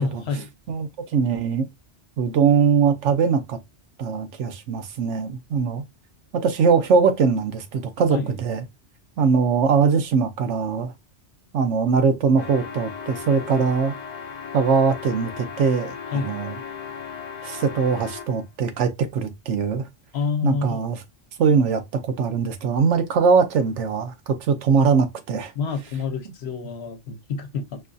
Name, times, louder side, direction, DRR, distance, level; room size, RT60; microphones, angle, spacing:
voice 1, 0.0-0.5 8.1-8.3 16.1-16.4 20.1-20.8 25.5-27.8, left 5 dB, 70° left, 1.0 m, -28 dB
voice 2, 0.7-1.7 2.2-3.6 4.0-5.8 6.3-8.6 9.2-10.9 11.5-13.9 14.5-15.9 16.2-16.5 17.4-19.9 20.4-21.0 21.4-25.5, right 5 dB, 90° right, 1.0 m, -21 dB
sound 1, 12.4-18.4, left 6 dB, 50° left, 0.6 m, -36 dB
4.5 x 2.6 x 2.3 m
omnidirectional pair, 1.2 m